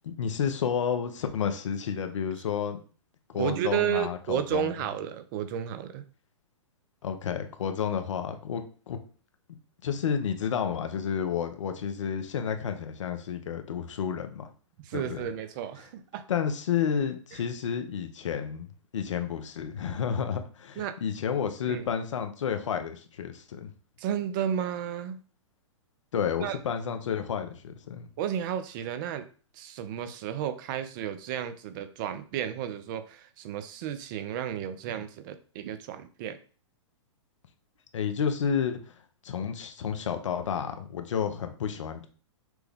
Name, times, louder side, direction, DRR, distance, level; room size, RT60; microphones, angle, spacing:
voice 1, 0.0-2.8 3.3-4.8 7.0-9.0 9.8-14.5 14.9-15.2 16.3-23.7 26.1-28.1 37.9-38.8 39.2-42.1, left 7 dB, 75° left, 7 dB, 0.8 m, -31 dB
voice 2, 3.3-6.0 14.8-16.2 20.8-21.0 21.7-21.8 24.0-25.2 26.4-26.6 28.2-29.3 29.5-36.4, right 10 dB, 45° right, 11 dB, 0.5 m, -32 dB
6.0 x 2.3 x 3.5 m, 0.40 s
hypercardioid pair, 125°, 16 cm